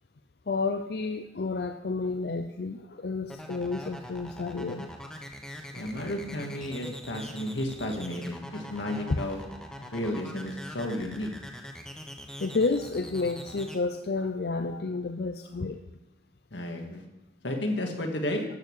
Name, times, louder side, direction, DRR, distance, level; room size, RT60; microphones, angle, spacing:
voice 1, 0.5-4.9 9.0-9.2 12.4-15.8, left 3 dB, 60° left, 6 dB, 0.5 m, -30 dB
sound 1, 3.3-13.8, equal, 5° left, 1.2 m, -42 dB
voice 2, 5.7-9.4 9.9-11.3 16.5-17.0 17.4-18.4, left 1 dB, 90° left, 2 dB, 2.0 m, -32 dB
13.0 x 8.6 x 4.8 m, 0.99 s
head